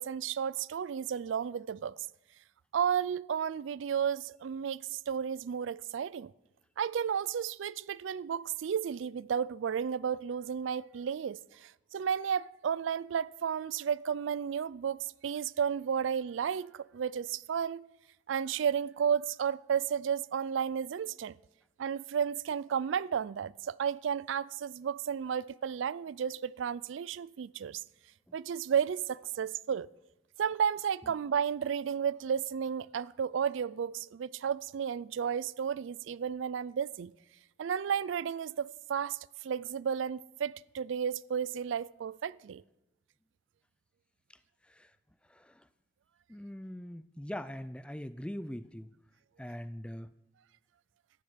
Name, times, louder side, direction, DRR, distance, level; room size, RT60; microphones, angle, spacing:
voice 1, 0.0-2.0 2.7-6.3 6.8-17.9 18.3-21.4 21.8-27.8 28.3-29.9 30.4-37.1 37.6-39.2 39.4-42.6, right 7 dB, 80° right, 0.4 m, -33 dB
voice 2, 45.3-45.7 46.3-48.9 49.4-50.1, equal, 5° left, 0.4 m, -42 dB
13.5 x 10.0 x 6.3 m
head